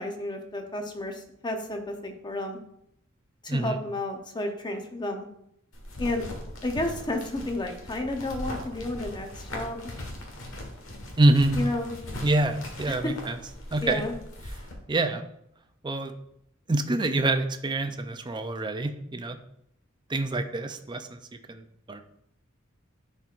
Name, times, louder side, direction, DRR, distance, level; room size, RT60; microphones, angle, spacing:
voice 1, 0.0-2.6 3.4-5.3 6.0-6.2 6.6-9.8 11.6-11.9 12.9-13.1 13.8-14.1, left 1 dB, 20° left, 4 dB, 0.8 m, -31 dB
sound 1, 5.7-14.7, left 1 dB, 70° left, 1.4 m, -39 dB
voice 2, 11.2-11.6 12.2-13.4 13.7-14.0 14.9-15.2 15.8-16.1 16.7-19.4 20.1-21.2 21.5-22.0, right 2 dB, 20° right, 8 dB, 0.5 m, -26 dB
10.5 x 4.5 x 2.5 m, 0.76 s
head